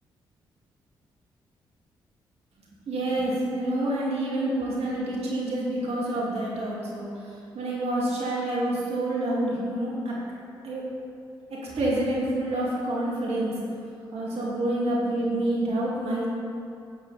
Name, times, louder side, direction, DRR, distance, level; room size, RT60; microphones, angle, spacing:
voice 1, 2.9-7.1 7.5-10.1 10.6-10.9 11.5-13.5 14.1-16.3, right 1 dB, 65° right, -5 dB, 2.6 m, -27 dB
10.5 x 9.5 x 4.2 m, 2.5 s
hypercardioid pair, 40°, 11 cm